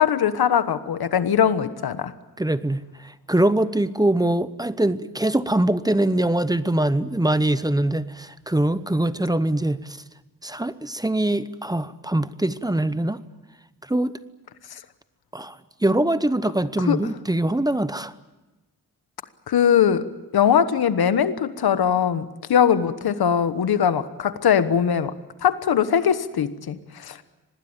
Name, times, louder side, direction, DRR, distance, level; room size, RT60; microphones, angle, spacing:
voice 1, 0.0-2.1 16.8-17.1 19.5-20.1 20.3-25.1 25.4-27.2, left 8 dB, 90° left, 12 dB, 1.3 m, -21 dB
voice 2, 2.4-10.0 10.4-13.2 13.9-14.2 15.3-15.6 15.8-18.1, right 1 dB, 10° right, 14 dB, 0.9 m, -23 dB
25.5 x 19.5 x 9.0 m, 1.1 s
wide cardioid pair, 95°, 36 cm